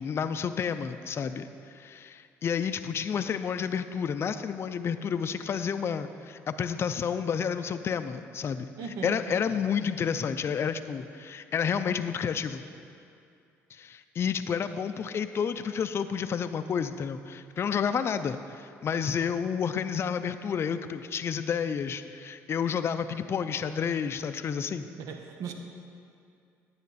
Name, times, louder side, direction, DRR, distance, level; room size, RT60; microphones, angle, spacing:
voice 1, 0.0-8.7 9.0-12.6 13.7-24.9, left 7 dB, 45° left, 10 dB, 0.4 m, -30 dB
voice 2, 8.8-9.7 25.0-25.5, right 5 dB, 75° right, 4 dB, 0.9 m, -38 dB
10.5 x 8.7 x 4.1 m, 2.5 s
supercardioid pair, 85°, 6 cm